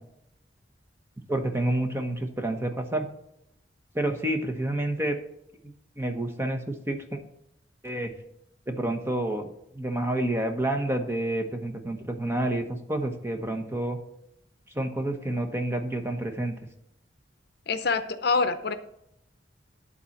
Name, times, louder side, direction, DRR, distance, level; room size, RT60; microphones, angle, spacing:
voice 1, 1.3-3.1 3.9-5.2 6.0-7.2 7.8-8.1 8.7-9.5 9.7-14.0 14.7-16.6, right 1 dB, 15° right, 5 dB, 1.0 m, -29 dB
voice 2, 17.7-18.8, left 4 dB, 60° left, 10 dB, 0.7 m, -25 dB
11.5 x 4.2 x 7.1 m, 0.77 s
head